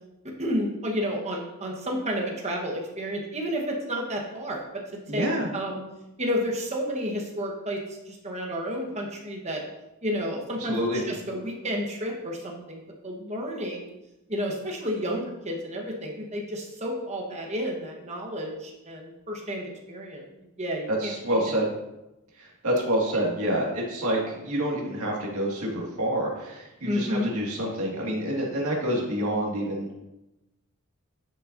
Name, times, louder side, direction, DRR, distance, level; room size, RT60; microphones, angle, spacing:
voice 1, 0.4-5.8 6.2-7.8 8.1-9.6 10.0-13.9 14.3-20.2 20.6-21.6 23.1-23.6 26.8-27.3, equal, 30° right, 0 dB, 1.1 m, -31 dB
voice 2, 5.1-5.5 10.6-11.0 21.0-21.7 22.4-29.9, right 1 dB, 75° right, -3 dB, 1.9 m, -27 dB
10.0 x 5.5 x 2.6 m, 0.95 s
head